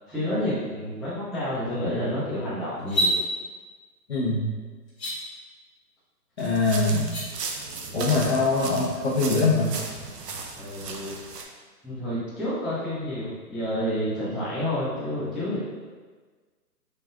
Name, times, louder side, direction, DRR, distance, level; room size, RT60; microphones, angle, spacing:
voice 1, 0.1-3.2 10.6-11.2 11.8-15.6, equal, ahead, -12 dB, 0.3 m, -29 dB
sound 1, 2.8-3.1 4.9-5.1 7.0-7.2, right 1 dB, 20° left, 1.3 m, -24 dB
voice 2, 4.1-4.5 6.4-7.2 7.9-9.7, left 3 dB, 40° left, -5 dB, 0.7 m, -23 dB
sound 2, 6.4-11.4, right 4 dB, 70° right, 0.6 m, -36 dB
3.6 x 3.2 x 2.2 m, 1.4 s
hypercardioid pair, 165°, 50 cm